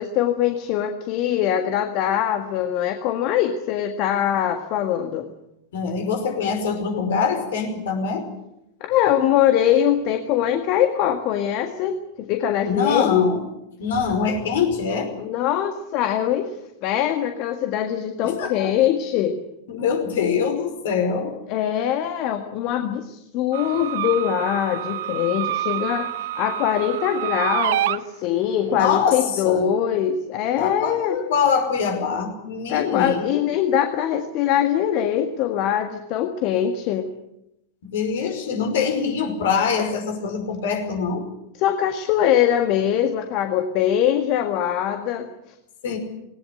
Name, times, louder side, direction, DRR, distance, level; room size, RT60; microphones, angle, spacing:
voice 1, 0.0-5.3 8.8-13.2 15.2-16.5 16.8-19.4 21.5-31.2 32.7-37.1 41.6-45.3, left 10 dB, 40° left, 7 dB, 1.7 m, -22 dB
voice 2, 5.7-8.3 12.6-13.4 13.8-15.1 18.2-18.7 19.7-21.3 28.7-29.6 30.6-33.4 37.8-41.3 45.8-46.0, left 6 dB, 55° left, 5 dB, 5.1 m, -24 dB
sound 1, 23.5-28.0, right 14 dB, 55° right, 0.8 m, -27 dB
19.5 x 18.5 x 9.7 m, 0.85 s
figure-of-eight pair, 90°, 0 cm